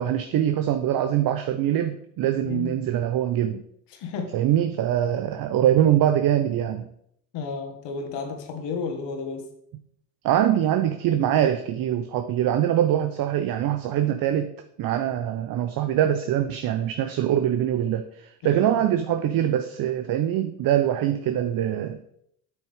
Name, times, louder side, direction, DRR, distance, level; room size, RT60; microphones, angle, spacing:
voice 1, 0.0-3.6 4.3-6.9 10.2-14.5 14.8-22.0, right 11 dB, 45° right, 9 dB, 0.7 m, -23 dB
voice 2, 3.9-4.3 7.3-9.5 18.4-18.7, left 5 dB, 60° left, 4 dB, 1.8 m, -32 dB
8.6 x 6.3 x 3.6 m, 0.72 s
hypercardioid pair, 70°, 47 cm